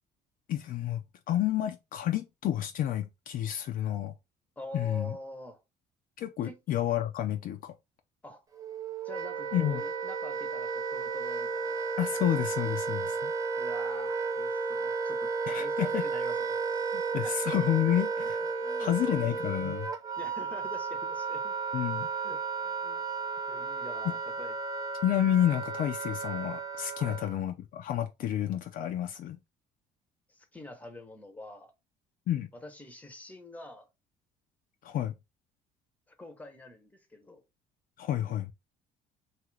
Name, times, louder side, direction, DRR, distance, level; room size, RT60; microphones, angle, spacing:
voice 1, 0.5-1.0 1.3-4.1 4.7-5.2 6.2-7.7 9.5-9.8 12.0-13.3 15.5-16.0 16.9-18.4 18.8-19.9 21.7-22.1 25.0-29.4 32.3-32.5 34.8-35.1 38.0-38.5, left 11 dB, 55° left, 0.4 m, -30 dB
voice 2, 4.6-5.6 6.4-6.6 8.2-8.4 9.0-11.9 13.6-16.8 17.1-17.4 18.4-19.3 20.2-21.5 22.1-23.0 23.5-24.5 26.9-27.2 30.3-31.7 32.5-33.9 36.2-37.4, left 1 dB, 10° left, 0.8 m, -46 dB
Wind instrument woodwind instrument, 8.6-27.4, right 4 dB, 20° right, 0.5 m, -33 dB
2.7 x 2.4 x 3.2 m
supercardioid pair, 90°, 17 cm